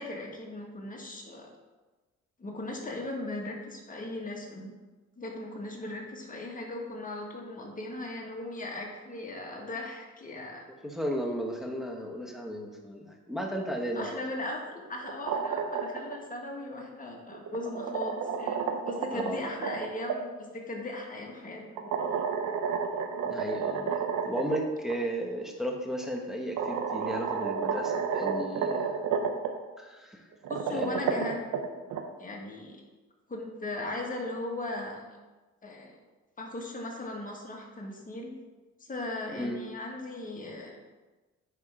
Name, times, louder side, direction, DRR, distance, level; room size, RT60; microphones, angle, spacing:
voice 1, 0.0-1.5 2.4-4.7 5.2-10.7 13.9-18.6 18.8-21.9 30.5-31.4 32.2-32.8 33.3-35.0 35.6-36.0 36.4-38.3 38.8-40.8, left 2 dB, 25° left, 0 dB, 1.7 m, -38 dB
voice 2, 10.7-14.2 19.1-19.4 23.2-29.0 29.8-30.2 30.7-31.2 39.3-39.6, equal, ahead, 1 dB, 1.2 m, -34 dB
sound 1, 15.0-16.2 17.3-20.2 21.8-24.6 24.9-25.0 26.0-26.1 26.6-29.5 30.3-32.0, right 6 dB, 85° right, 0.8 m, -31 dB
9.1 x 3.6 x 4.9 m, 1.2 s
cardioid pair, 90°, 30 cm